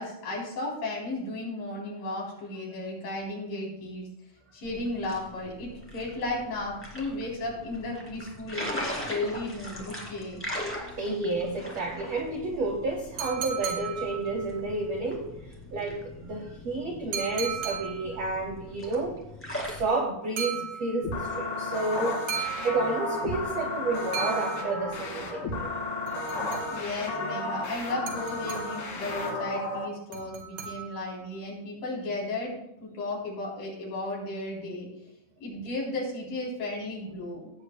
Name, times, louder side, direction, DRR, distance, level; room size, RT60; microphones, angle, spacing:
voice 1, 0.0-4.1 4.5-8.7 9.1-10.4 26.1-34.9 35.4-37.5, left 2 dB, 65° left, -4 dB, 5.2 m, -34 dB
sound 1, 4.6-19.9, left 1 dB, 5° left, 1.4 m, -40 dB
voice 2, 11.0-19.3 19.6-25.8, right 3 dB, 70° right, 2 dB, 1.5 m, -31 dB
sound 2, 13.2-14.7 17.1-18.3 20.4-21.2 22.3-23.3 24.1-25.1 26.1-27.0 28.1-29.0 30.1-31.2, right 8 dB, 85° right, 3.6 m, -36 dB
sound 3, 21.0-29.8, left 2 dB, 85° left, 4.2 m, -33 dB
17.5 x 8.3 x 2.2 m, 0.86 s
omnidirectional pair, 4.3 m